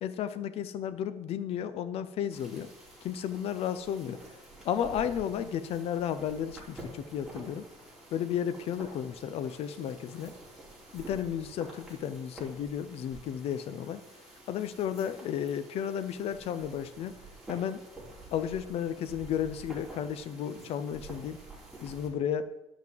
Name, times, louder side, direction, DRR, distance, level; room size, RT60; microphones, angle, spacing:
voice 1, 0.0-2.7 3.0-4.2 4.6-7.6 8.1-10.3 10.9-14.0 14.5-17.2 17.5-17.8 18.3-21.4 21.8-22.5, left 9 dB, 60° left, 11 dB, 0.7 m, -33 dB
sound 1, 2.3-22.1, right 2 dB, ahead, 3.4 m, -49 dB
11.0 x 6.0 x 7.6 m, 0.93 s
cardioid pair, 150°, 12 cm